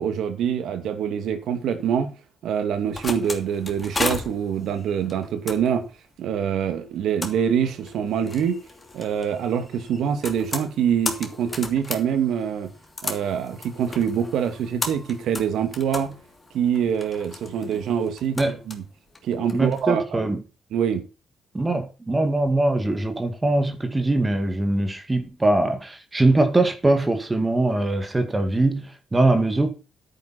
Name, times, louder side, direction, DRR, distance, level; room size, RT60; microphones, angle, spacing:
voice 1, 0.0-2.1 2.4-5.8 6.2-8.6 8.9-12.7 13.0-16.1 16.5-18.8 19.2-20.3 20.7-21.0, right 8 dB, 75° right, 2.4 m, -25 dB
sound 1, 2.6-19.8, left 2 dB, 25° left, 2.8 m, -35 dB
voice 2, 19.5-20.4 21.5-29.7, right 2 dB, 20° right, 2.1 m, -22 dB
10.0 x 9.3 x 4.3 m
cardioid pair, 90°, 0 cm